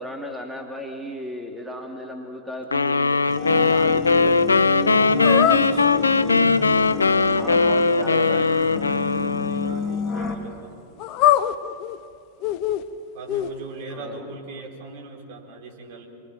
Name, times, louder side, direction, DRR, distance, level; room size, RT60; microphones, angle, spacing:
voice 1, 0.0-3.2 3.5-4.3 7.3-8.6 13.9-14.6, left 1 dB, 5° right, 1 dB, 2.6 m, -35 dB
sound 1, 2.7-9.9, left 4 dB, 75° left, 0.6 m, -20 dB
sound 2, 3.3-10.3, left 3 dB, 20° left, 3.3 m, -30 dB
sound 3, 5.2-5.7 11.0-12.0 12.4-12.8 13.3-13.5, left 12 dB, 40° left, 0.9 m, -21 dB
voice 2, 5.3-6.1 8.2-10.8 13.1-16.1, right 3 dB, 50° right, -1 dB, 4.5 m, -40 dB
28.0 x 22.0 x 7.3 m, 2.4 s
figure-of-eight pair, 90°, 0 cm